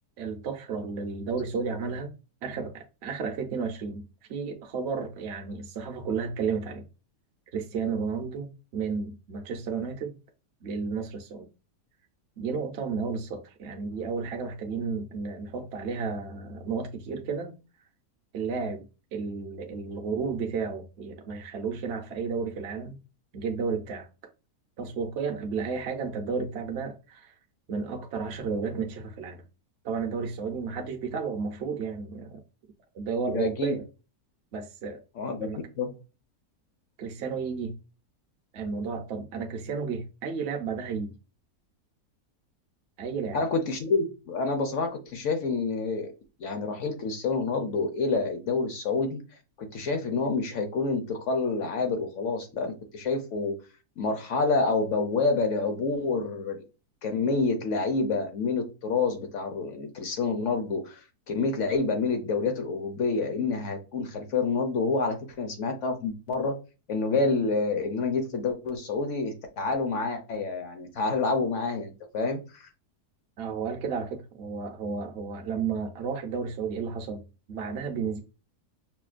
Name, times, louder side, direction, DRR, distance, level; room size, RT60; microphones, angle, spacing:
voice 1, 0.2-2.1 2.4-6.8 7.5-10.2 10.6-11.5 12.4-17.5 18.3-23.0 23.3-24.1 24.8-27.4 27.7-29.4 29.8-32.4 32.9-33.9 34.5-35.0 35.4-35.6 37.0-37.8 38.5-41.1 43.0-43.4 73.4-77.2 77.5-78.2, right 5 dB, 55° right, 0.8 m, -32 dB
voice 2, 33.3-33.8 35.2-35.5 35.8-35.9 43.3-46.1 46.4-49.2 49.6-53.5 54.0-56.6 57.0-66.5 66.9-72.7, left 3 dB, 60° left, 0.8 m, -28 dB
5.7 x 2.2 x 2.4 m
omnidirectional pair, 1.7 m